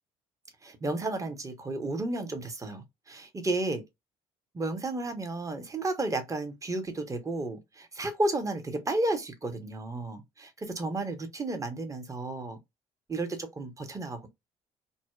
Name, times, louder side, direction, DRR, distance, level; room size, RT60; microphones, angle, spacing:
voice 1, 0.6-3.8 4.5-12.6 13.1-14.3, right 2 dB, 20° right, 0.8 m, -32 dB
2.6 x 2.1 x 2.2 m
hypercardioid pair, 60°, 15 cm